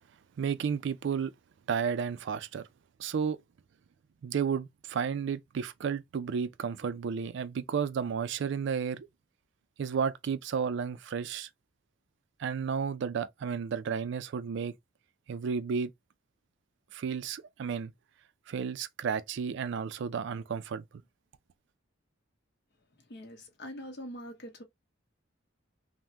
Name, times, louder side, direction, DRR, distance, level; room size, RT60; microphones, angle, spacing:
voice 1, 0.4-1.3 1.7-2.7 3.0-3.4 4.2-9.1 9.8-11.5 12.4-14.7 15.3-15.9 16.9-17.9 18.5-20.8, right 6 dB, 65° right, 0.3 m, -32 dB
voice 2, 23.0-24.6, equal, 60° left, 0.8 m, -44 dB
3.4 x 2.1 x 2.7 m
head